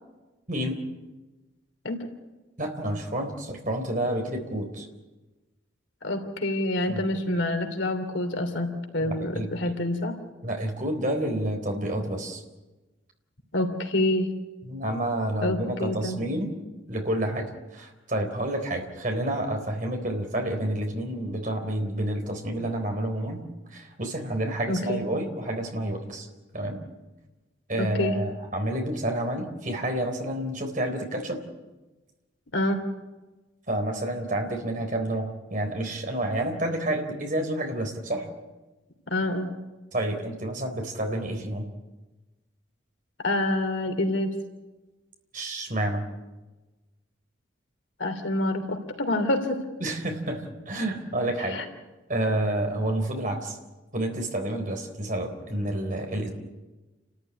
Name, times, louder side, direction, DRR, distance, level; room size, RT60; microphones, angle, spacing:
voice 1, 0.5-0.8 2.6-4.9 6.9-7.0 9.0-9.7 10.4-12.4 14.6-16.5 16.9-23.4 23.7-26.3 26.5-26.8 27.7-31.4 33.7-38.3 39.9-41.7 45.3-46.0 49.8-51.6 52.1-53.6 53.9-56.3, right 1 dB, 45° right, 3 dB, 4.0 m, -29 dB
voice 2, 6.0-10.1 13.5-14.3 15.4-16.2 24.7-25.0 27.8-28.2 32.5-32.8 39.1-39.5 43.2-44.3 48.0-49.6 51.5-51.6, left 1 dB, 80° left, 5 dB, 3.0 m, -27 dB
29.5 x 14.0 x 9.7 m, 1.1 s
head